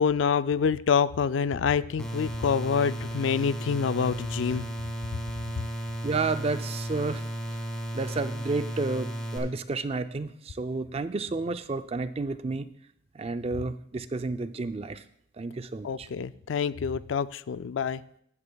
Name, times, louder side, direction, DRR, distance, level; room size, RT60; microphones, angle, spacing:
voice 1, 0.0-4.7 15.8-18.0, left 6 dB, 70° left, 15 dB, 0.3 m, -26 dB
sound 1, 2.0-9.4, right 1 dB, 5° left, 1.5 m, -34 dB
voice 2, 6.0-7.6 7.9-12.7 13.1-15.0 15.4-16.1, right 3 dB, 30° right, 11 dB, 0.4 m, -31 dB
15.0 x 9.7 x 2.3 m, 0.72 s
head